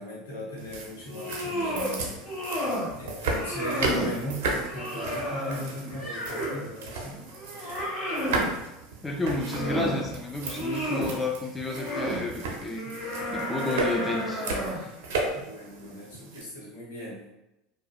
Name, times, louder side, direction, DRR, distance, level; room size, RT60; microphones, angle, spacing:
voice 1, 0.0-2.1 2.9-7.2 15.3-17.3, equal, 75° left, -6 dB, 1.1 m, -38 dB
sound 1, 0.6-16.4, right 3 dB, 70° right, 0.4 m, -35 dB
sound 2, 1.0-1.9 2.2-2.9 3.3-4.2 4.6-6.7 7.1-8.5 9.2-10.0 10.4-11.2 11.6-12.2 12.7-14.9, equal, 35° left, 1.3 m, -32 dB
voice 2, 9.0-12.9 13.3-14.4, left 2 dB, 15° left, 0 dB, 0.3 m, -31 dB
2.6 x 2.1 x 2.3 m, 0.91 s
hypercardioid pair, 80°, 0 cm